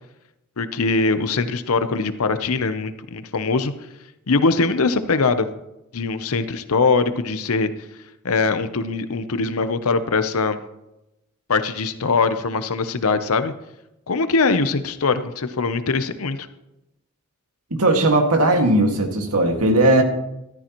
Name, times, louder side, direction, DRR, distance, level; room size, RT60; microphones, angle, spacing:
voice 1, 0.6-3.7 4.3-5.5 5.9-7.7 8.2-10.6 11.5-13.5 14.1-16.5, left 4 dB, 80° left, 11 dB, 0.8 m, -22 dB
voice 2, 17.7-20.0, right 1 dB, 85° right, 3 dB, 1.9 m, -17 dB
14.0 x 13.0 x 3.0 m, 0.90 s
head